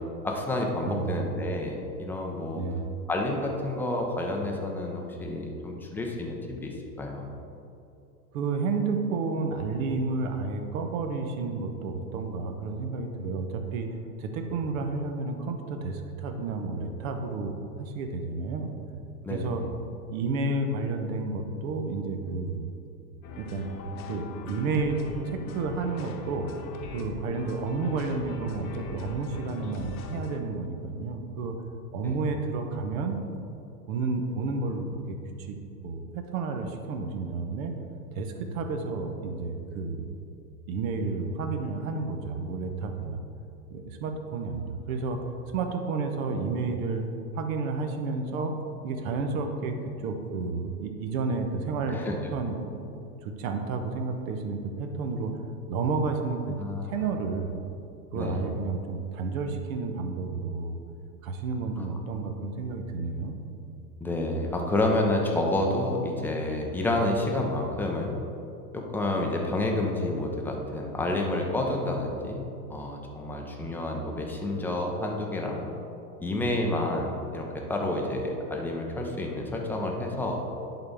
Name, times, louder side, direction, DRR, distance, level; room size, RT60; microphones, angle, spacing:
voice 1, 0.2-2.6 3.1-7.3 19.2-19.7 32.0-32.1 51.9-52.2 56.6-56.9 58.1-58.4 61.8-61.9 64.0-68.2 68.7-75.6 76.2-80.4, left 1 dB, 5° left, 0 dB, 0.4 m, -29 dB
voice 2, 0.9-1.2 2.6-2.8 8.3-18.7 19.3-19.6 20.1-22.7 23.4-23.7 24.1-26.5 26.9-31.6 31.9-33.2 33.9-35.6 35.8-37.7 38.1-40.1 40.7-43.2 43.7-45.2 45.5-47.0 47.3-48.5 48.8-49.8 50.0-52.0 52.3-52.6 52.9-55.3 55.7-56.6 56.9-57.6 58.1-60.8 61.2-63.4, right 4 dB, 55° right, 5 dB, 1.0 m, -31 dB
sound 1, 23.2-30.4, left 4 dB, 60° left, 0.9 m, -40 dB
11.0 x 4.0 x 3.5 m, 2.7 s
hypercardioid pair, 105°, 49 cm